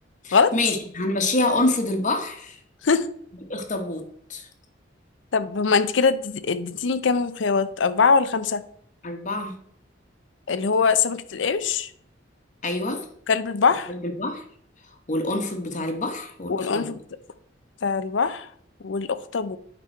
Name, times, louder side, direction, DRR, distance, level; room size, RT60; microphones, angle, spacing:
voice 1, 0.2-2.6 3.5-4.0 4.3-4.5 9.0-9.5 12.6-13.0 13.9-14.4 15.1-17.0, left 2 dB, 40° left, 4 dB, 1.2 m, -26 dB
voice 2, 5.3-8.6 10.5-11.9 13.3-13.9 16.5-17.0 17.8-18.5 18.8-19.6, left 5 dB, 75° left, 12 dB, 0.6 m, -22 dB
9.1 x 5.4 x 4.5 m, 0.62 s
head